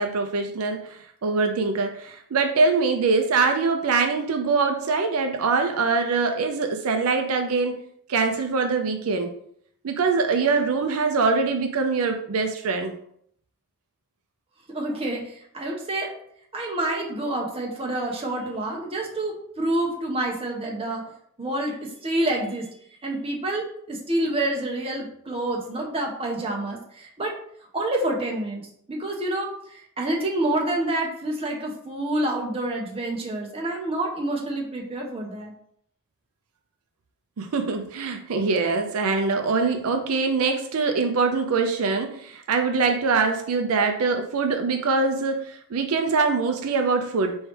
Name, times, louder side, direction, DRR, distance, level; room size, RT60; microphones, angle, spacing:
voice 1, 0.0-7.8 8.1-9.3 9.8-12.9 37.4-47.4, right 4 dB, 75° right, 5 dB, 0.5 m, -23 dB
voice 2, 14.7-16.1 16.5-21.0 21.4-21.7 22.0-22.6 23.0-27.3 27.7-35.5, right 1 dB, 25° right, -1 dB, 0.9 m, -28 dB
4.6 x 3.1 x 3.2 m, 0.67 s
head